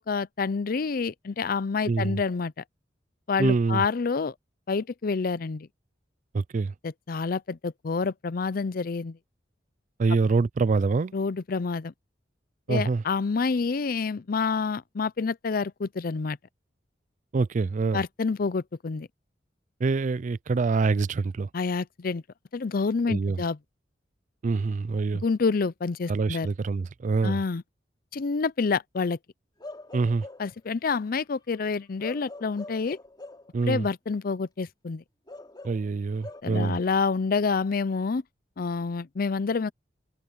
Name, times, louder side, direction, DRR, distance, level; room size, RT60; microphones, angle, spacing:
voice 1, 0.0-2.5 3.3-4.3 4.7-5.7 6.8-9.2 11.1-11.9 12.7-16.4 17.9-19.1 21.5-22.2 22.5-23.6 25.2-26.5 27.2-27.6 28.1-29.2 30.4-33.0 33.7-35.0 36.4-38.2 38.6-39.7, left 4 dB, 50° left, 0.5 m, -28 dB
voice 2, 1.9-2.2 3.4-3.8 6.3-6.7 10.0-11.1 12.7-13.0 17.3-18.0 19.8-21.5 23.1-23.4 24.4-25.2 26.1-27.4 29.9-30.3 33.5-33.9 35.6-36.8, right 4 dB, 45° right, 0.4 m, -25 dB
Bark / Livestock farm animals working animals, 29.6-30.6 32.0-33.5 35.3-36.4, left 2 dB, 25° left, 3.5 m, -43 dB
head